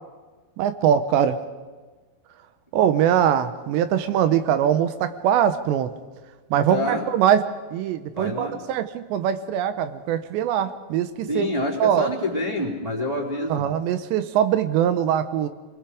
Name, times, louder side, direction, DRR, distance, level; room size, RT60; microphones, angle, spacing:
voice 1, 0.6-1.4 2.7-5.9 6.5-7.4 7.7-11.5 11.8-12.1 13.5-15.5, right 9 dB, 85° right, 10 dB, 3.2 m, -22 dB
voice 2, 6.7-7.1 8.1-8.6 11.3-13.7, left 1 dB, 10° right, -9 dB, 2.9 m, -27 dB
27.5 x 21.0 x 5.0 m, 1.3 s
omnidirectional pair, 4.9 m